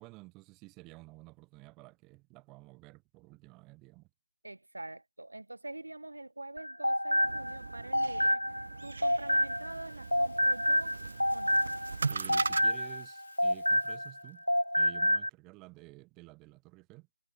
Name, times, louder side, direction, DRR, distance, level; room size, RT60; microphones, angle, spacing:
voice 1, 0.0-4.1 12.1-14.4 14.8-17.1, right 24 dB, 10° right, 1.2 m, -52 dB
voice 2, 4.4-8.4 8.8-11.0 11.3-11.6, right 2 dB, 65° right, 1.7 m, -45 dB
sound 1, 6.6-9.8 10.1-14.2 14.5-15.3, equal, 85° left, 0.8 m, -28 dB
sound 2, 7.2-12.6, right 4 dB, 40° right, 1.0 m, -39 dB
Rattle (instrument), 8.9-14.9, left 6 dB, 30° left, 3.1 m, -62 dB
figure-of-eight pair, 160°, 0 cm